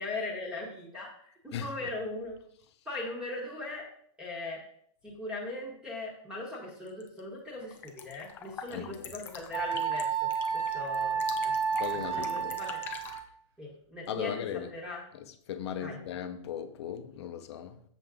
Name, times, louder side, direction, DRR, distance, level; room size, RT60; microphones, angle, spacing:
voice 1, 0.0-2.4 2.8-3.8 4.2-4.6 5.0-11.5 12.1-12.8 13.6-15.0 15.8-16.0, left 2 dB, 5° right, 1.3 m, -39 dB
voice 2, 1.5-1.9 8.7-9.1 11.8-12.6 14.1-14.7 15.1-17.8, left 9 dB, 55° left, 0.7 m, -38 dB
sound 1, 6.8-7.2 7.5-13.2, left 7 dB, 10° left, 0.3 m, -45 dB
Wind instrument woodwind instrument, 9.5-13.3, right 6 dB, 50° right, 1.2 m, -31 dB
7.0 x 6.7 x 3.7 m
supercardioid pair, 175°, 17 cm